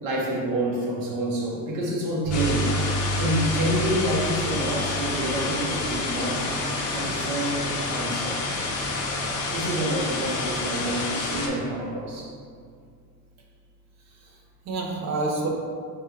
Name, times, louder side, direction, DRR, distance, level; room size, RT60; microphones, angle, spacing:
voice 1, 0.0-2.7 3.2-6.5 6.9-8.4 9.5-12.3, right 1 dB, 70° right, -3 dB, 1.0 m, -28 dB
sound 1, 2.2-11.5, right 1 dB, 5° right, 0.7 m, -34 dB
sound 2, 2.3-11.5, left 3 dB, 60° left, 0.7 m, -29 dB
voice 2, 14.1-15.5, right 3 dB, 50° right, 0 dB, 0.6 m, -30 dB
3.5 x 2.2 x 4.5 m, 2.1 s
cardioid pair, 160°, 36 cm